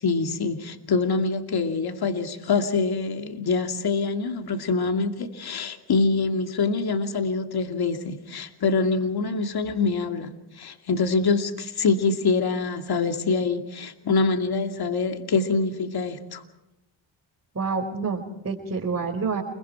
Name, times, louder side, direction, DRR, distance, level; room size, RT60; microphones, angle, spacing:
voice 1, 0.0-16.4, left 4 dB, 55° left, 6 dB, 2.5 m, -25 dB
voice 2, 17.5-19.4, right 4 dB, 35° right, -1 dB, 4.4 m, -28 dB
29.5 x 22.5 x 4.6 m, 0.90 s
cardioid pair, 65°, 45 cm